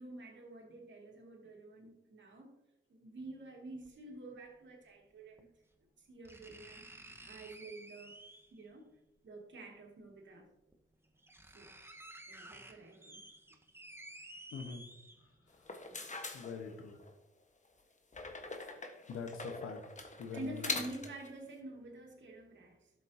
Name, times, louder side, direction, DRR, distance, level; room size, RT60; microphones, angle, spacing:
voice 1, 0.0-2.5 2.9-5.5 6.0-6.9 7.2-8.2 8.5-8.9 9.2-10.5 11.5-11.7 12.3-13.3 20.3-22.9, right 2 dB, 60° right, 0 dB, 2.6 m, -48 dB
sound 1, 3.8-3.9 5.4-5.5 6.2-8.6 10.0-10.1 10.7-10.8 11.0-15.5 15.9-16.0, right 1 dB, 10° right, 1.4 m, -53 dB
voice 2, 14.5-14.8 16.3-16.9 19.1-19.8 20.2-20.7, left 5 dB, 80° left, 6 dB, 1.3 m, -43 dB
sound 2, 15.5-17.1 18.1-21.3, left 3 dB, 35° left, 1.4 m, -43 dB
12.0 x 7.6 x 2.9 m, 0.89 s
supercardioid pair, 45°, 21 cm